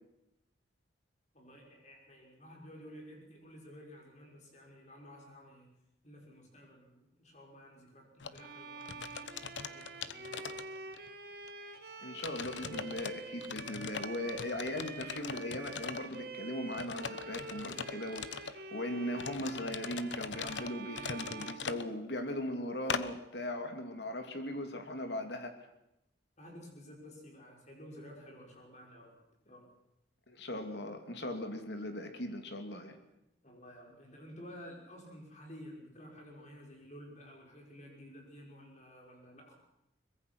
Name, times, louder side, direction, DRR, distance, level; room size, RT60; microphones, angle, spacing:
voice 1, 1.3-5.7 6.0-10.9 26.4-29.2 29.4-29.7 33.4-39.5, equal, 40° left, 0 dB, 6.0 m, -52 dB
sound 1, 8.2-8.4 8.8-11.1 11.5-11.6 12.2-13.1 13.4-16.2 16.7-18.6 19.2-21.8 22.9-23.0, left 6 dB, 85° left, 1.1 m, -41 dB
Bowed string instrument, 8.3-22.4, right 3 dB, 55° right, 2.1 m, -47 dB
voice 2, 12.0-25.6 30.3-33.0, left 1 dB, 70° left, 6 dB, 3.0 m, -39 dB
23.5 x 21.5 x 6.3 m, 0.85 s
head